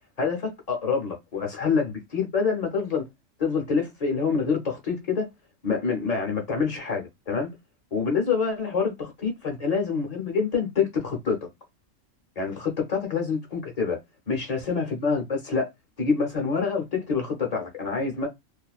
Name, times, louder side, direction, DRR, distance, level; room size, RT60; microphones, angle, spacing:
voice 1, 0.2-3.1 3.4-5.3 5.6-7.5 7.9-11.4 12.4-14.0 14.3-15.7 16.0-18.3, left 5 dB, 40° left, 0.6 m, -26 dB
2.4 x 2.2 x 2.3 m
omnidirectional pair, 1.3 m